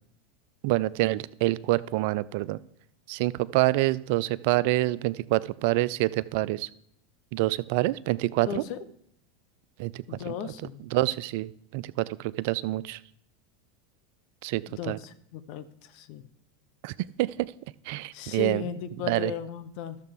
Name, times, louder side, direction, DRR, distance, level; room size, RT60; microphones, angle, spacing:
voice 1, 0.6-2.6 3.1-6.7 7.3-8.6 9.8-10.0 10.4-10.5 10.9-13.0 14.4-15.0 16.8-16.9 17.2-17.5 17.9-18.6 19.1-19.3, right 18 dB, 60° right, 18 dB, 0.3 m, -26 dB
voice 2, 8.5-8.8 10.1-10.8 14.7-16.2 18.1-20.0, left 8 dB, 60° left, 11 dB, 0.7 m, -36 dB
13.0 x 6.6 x 3.6 m, 0.72 s
hypercardioid pair, 90°, 0 cm